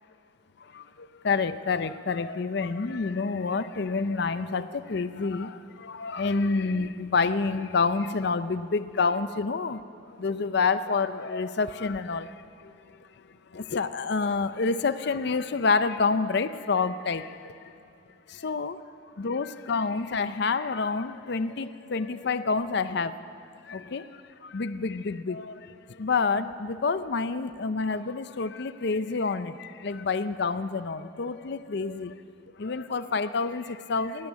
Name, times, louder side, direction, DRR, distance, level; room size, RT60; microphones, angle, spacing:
voice 1, 0.6-9.8 10.1-12.7 13.5-17.7 18.3-18.8 19.2-23.2 23.6-32.2 32.6-34.3, left 4 dB, 60° left, 12 dB, 0.5 m, -28 dB
19.0 x 14.5 x 9.6 m, 2.5 s
head